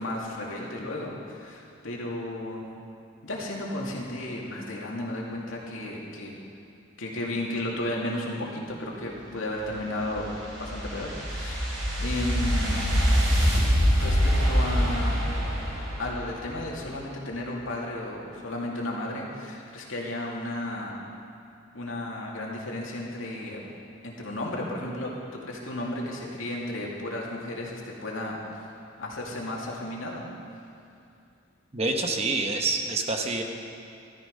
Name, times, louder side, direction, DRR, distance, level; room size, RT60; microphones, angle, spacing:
voice 1, 0.0-2.6 3.2-6.3 7.0-10.3 10.6-12.8 14.0-14.2 14.5-15.2 16.0-21.0 21.7-23.6 24.0-28.4 29.0-30.3, left 1 dB, 80° left, -2 dB, 2.4 m, -33 dB
sound 1, 9.5-16.8, equal, 60° right, 4.0 m, -25 dB
voice 2, 31.7-33.4, right 3 dB, 30° right, 4 dB, 1.0 m, -27 dB
14.0 x 13.5 x 5.3 m, 2.6 s
head